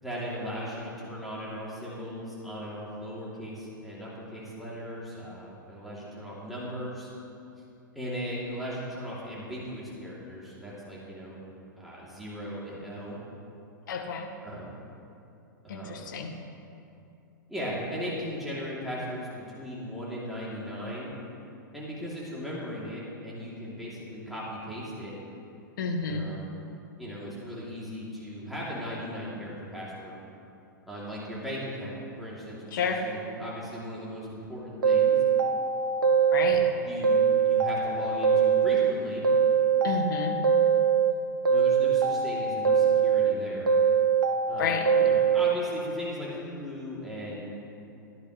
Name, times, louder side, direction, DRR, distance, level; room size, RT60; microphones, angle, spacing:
voice 1, 0.0-7.1 7.9-11.4 11.8-13.2 14.4-14.7 15.6-16.0 17.5-21.1 21.7-25.1 26.1-26.5 27.0-30.1 30.9-35.2 36.5-39.3 41.5-43.7 44.5-47.5, equal, ahead, -8 dB, 3.1 m, -37 dB
voice 2, 13.9-14.3 15.7-16.3 25.8-26.2 32.7-33.0 36.3-36.6 39.8-40.3 44.6-44.8, left 5 dB, 65° left, 2 dB, 1.6 m, -30 dB
sound 1, 34.8-36.7 37.0-38.9 39.2-41.1 41.5-43.3 43.7-45.5, right 7 dB, 75° right, 1.0 m, -23 dB
16.5 x 11.0 x 3.3 m, 2.7 s
hypercardioid pair, 105°, 11 cm